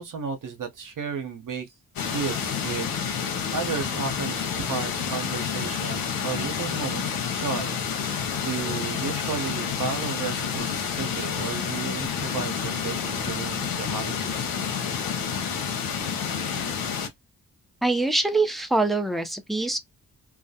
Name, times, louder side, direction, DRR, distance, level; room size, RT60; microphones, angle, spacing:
voice 1, 0.0-1.7 2.0-7.8 8.4-14.5, right 6 dB, 65° right, 0.8 m, -33 dB
sound 1, 2.0-17.1, left 7 dB, 85° left, 0.7 m, -29 dB
voice 2, 17.8-19.8, right 2 dB, ahead, 0.5 m, -24 dB
2.3 x 2.1 x 2.7 m
cardioid pair, 55°, 35 cm